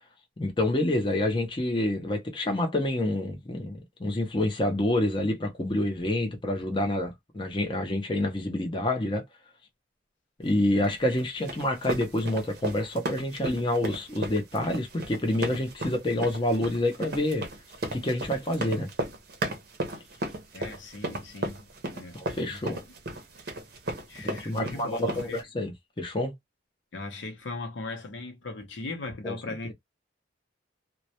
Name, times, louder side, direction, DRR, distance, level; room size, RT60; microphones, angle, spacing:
voice 1, 0.4-9.2 10.4-17.5 17.9-18.9 22.1-22.8 24.2-26.3 29.2-29.7, left 1 dB, 25° left, 0.5 m, -28 dB
sound 1, 10.8-25.4, right 1 dB, 55° right, 0.6 m, -35 dB
voice 2, 20.5-22.8 24.1-25.4 26.9-29.7, left 3 dB, 70° left, 0.6 m, -38 dB
2.2 x 2.0 x 2.7 m
head